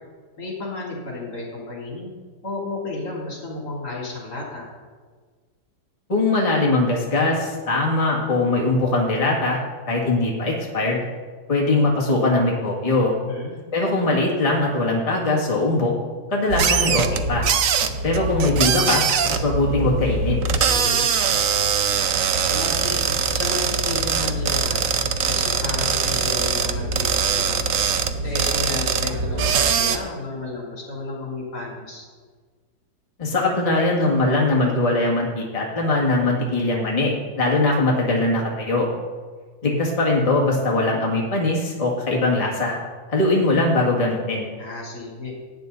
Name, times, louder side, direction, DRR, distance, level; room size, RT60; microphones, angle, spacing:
voice 1, 0.4-2.1 2.4-4.7 13.3-13.6 20.6-21.1 22.4-23.0 23.3-24.9 25.3-27.7 28.2-32.1 44.6-45.3, left 2 dB, 55° left, -3 dB, 3.8 m, -32 dB
voice 2, 6.1-9.6 9.9-11.1 11.5-13.1 13.7-15.9 16.3-17.5 18.0-20.4 33.2-38.9 39.6-42.7 43.1-44.4, left 2 dB, 20° left, -3 dB, 1.8 m, -21 dB
sound 1, 16.5-30.0, right 6 dB, 65° right, 0.8 m, -22 dB
17.0 x 9.1 x 4.1 m, 1.5 s
omnidirectional pair, 2.1 m